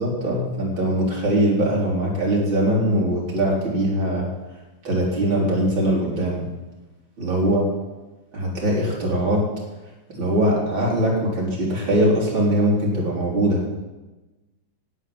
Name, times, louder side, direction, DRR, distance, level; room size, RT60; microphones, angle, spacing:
voice 1, 0.0-4.3 4.8-6.4 7.2-7.6 8.3-9.5 10.1-13.6, right 1 dB, 70° right, -3 dB, 4.3 m, -21 dB
11.0 x 9.4 x 7.7 m, 1.1 s
omnidirectional pair, 2.2 m